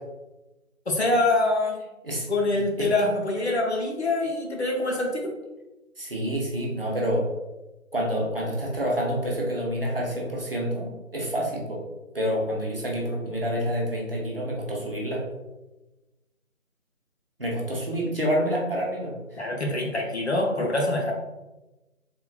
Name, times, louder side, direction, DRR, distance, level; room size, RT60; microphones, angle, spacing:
voice 1, 0.9-1.8 2.3-5.3 19.4-21.1, left 2 dB, 55° left, 0 dB, 0.6 m, -25 dB
voice 2, 6.0-7.2 7.9-11.8 12.1-15.2 17.4-19.1, equal, 45° right, -3 dB, 0.6 m, -28 dB
3.6 x 2.3 x 2.2 m, 1.1 s
figure-of-eight pair, 165°, 41 cm